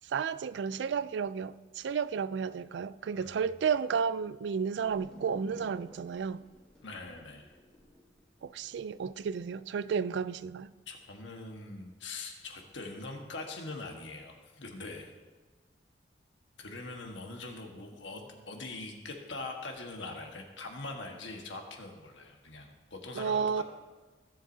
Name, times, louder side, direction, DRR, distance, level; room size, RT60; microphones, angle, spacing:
voice 1, 0.0-6.4 8.4-10.7 23.2-23.6, right 6 dB, 75° right, 0.3 m, -32 dB
sound 1, 4.8-9.4, equal, 5° left, 1.4 m, -53 dB
voice 2, 6.8-7.5 10.9-15.1 16.6-23.6, left 3 dB, 85° left, 1.4 m, -43 dB
16.5 x 7.5 x 2.7 m
head